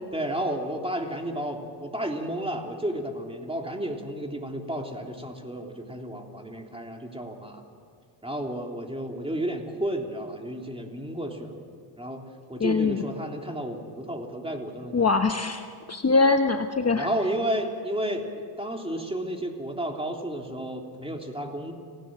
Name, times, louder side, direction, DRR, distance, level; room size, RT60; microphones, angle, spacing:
voice 1, 0.1-7.6 8.2-11.6 12.0-12.2 12.5-15.1 16.8-18.3 18.6-21.7, right 1 dB, 10° right, 2 dB, 3.3 m, -32 dB
voice 2, 12.6-13.0 14.9-17.1, left 4 dB, 30° left, 6 dB, 1.1 m, -23 dB
30.0 x 17.0 x 7.6 m, 2.2 s
cardioid pair, 85°, 49 cm